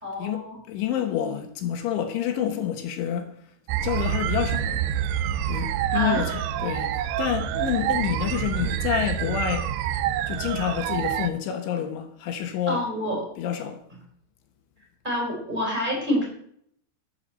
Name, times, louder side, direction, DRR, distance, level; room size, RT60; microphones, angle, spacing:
voice 1, 0.0-0.6 5.9-6.4 12.7-13.3 15.0-16.2, left 1 dB, 10° right, 5.0 m, -28 dB
voice 2, 0.7-3.3 3.8-4.8 5.5-6.3 6.6-6.9 7.2-9.7 10.3-12.8 13.4-13.8, left 10 dB, 75° left, 3.6 m, -28 dB
sound 1, 3.7-11.3, right 11 dB, 85° right, 2.3 m, -27 dB
13.0 x 8.1 x 7.5 m
omnidirectional pair, 5.5 m